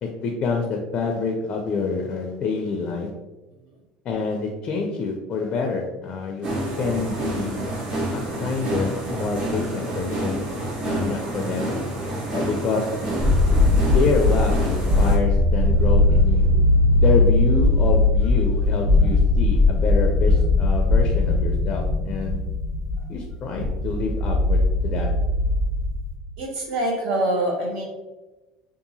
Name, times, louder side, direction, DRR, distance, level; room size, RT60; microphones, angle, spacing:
voice 1, 0.0-3.1 4.1-6.5 6.8-7.6 8.1-10.5 10.8-11.7 12.3-12.9 13.8-22.4 23.1-25.1, left 4 dB, 40° left, 2 dB, 0.4 m, -27 dB
sound 1, 6.4-15.2, right 1 dB, 40° right, 0.8 m, -28 dB
sound 2, 13.2-26.1, left 2 dB, 55° right, 1.3 m, -19 dB
voice 2, 26.4-27.8, right 1 dB, 75° right, -1 dB, 0.8 m, -24 dB
2.7 x 2.4 x 2.7 m, 1.1 s
supercardioid pair, 125°, 2 cm